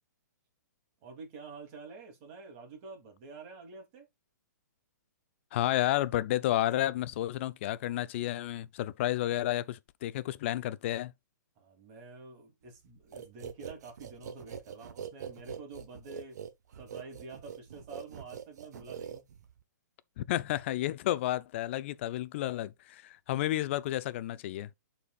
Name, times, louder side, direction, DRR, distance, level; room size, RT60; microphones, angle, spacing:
voice 1, 1.0-4.1 11.6-16.4 16.8-19.3, right 3 dB, 35° right, 2.7 m, -48 dB
voice 2, 5.5-11.1 20.2-24.7, left 14 dB, 40° left, 0.5 m, -31 dB
sound 1, 13.1-19.6, right 8 dB, 65° right, 1.1 m, -43 dB
12.0 x 4.4 x 2.4 m
hypercardioid pair, 150°, 10 cm